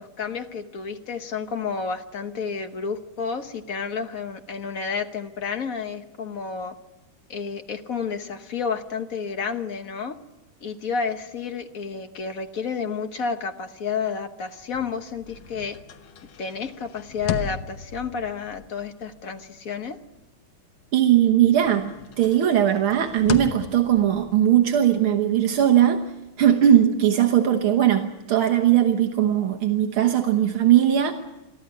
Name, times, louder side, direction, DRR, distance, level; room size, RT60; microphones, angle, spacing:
voice 1, 0.0-6.7 7.3-10.2 10.6-15.8 16.4-20.0, left 5 dB, 50° left, 7 dB, 1.4 m, -30 dB
sound 1, 14.6-21.1 21.4-26.8, left 6 dB, 65° left, 1.6 m, -38 dB
voice 2, 20.9-21.9 22.2-26.0 26.4-31.1, right 10 dB, 80° right, 5 dB, 2.0 m, -19 dB
23.0 x 14.0 x 9.6 m, 1.0 s
omnidirectional pair, 2.3 m